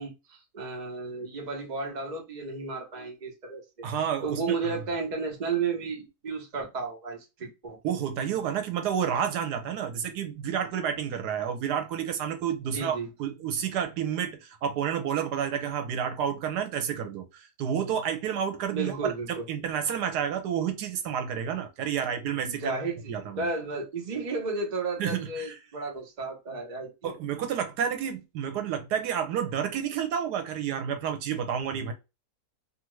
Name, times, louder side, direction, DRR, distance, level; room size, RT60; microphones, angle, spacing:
voice 1, 0.0-3.6 4.2-7.8 12.7-13.1 18.7-19.4 22.4-27.1, right 4 dB, 35° right, 0.8 m, -33 dB
voice 2, 3.8-4.5 7.8-22.7 23.1-23.5 25.0-25.5 27.0-31.9, right 8 dB, 85° right, 1.2 m, -30 dB
2.7 x 2.5 x 3.0 m
omnidirectional pair, 1.7 m